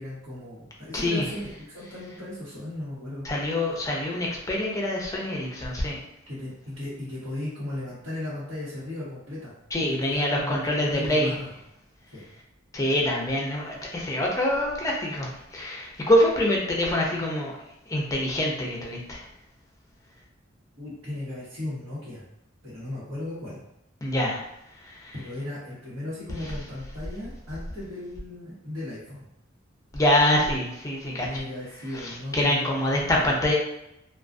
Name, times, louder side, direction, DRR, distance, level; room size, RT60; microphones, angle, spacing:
voice 1, 0.0-3.2 6.3-9.5 9.9-11.5 12.1-12.2 20.7-22.2 22.6-23.6 25.1-29.3 31.1-32.8 33.1-33.3, left 1 dB, 80° right, -13 dB, 1.1 m, -36 dB
voice 2, 0.9-1.3 3.2-6.0 9.7-11.3 12.7-17.5 17.9-19.2 24.0-24.4 24.8-25.1 29.9-31.4 31.9-33.5, left 1 dB, 15° left, -2 dB, 0.5 m, -25 dB
2.4 x 2.3 x 2.5 m, 0.85 s
head